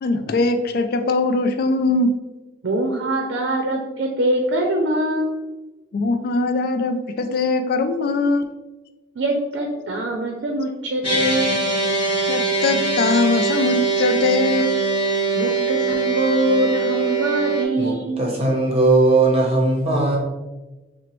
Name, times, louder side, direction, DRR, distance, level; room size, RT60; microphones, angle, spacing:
voice 1, 0.0-2.1 5.9-8.5 12.3-14.8, left 3 dB, 55° left, 7 dB, 0.3 m, -21 dB
voice 2, 2.6-5.3 9.2-11.6 15.3-18.2, right 1 dB, 75° right, 2 dB, 0.5 m, -23 dB
sound 1, 11.0-17.6, right 3 dB, 30° left, 1.4 m, -22 dB
voice 3, 17.8-20.2, right 2 dB, 35° right, -1 dB, 0.7 m, -18 dB
5.7 x 2.1 x 3.0 m, 1.1 s
head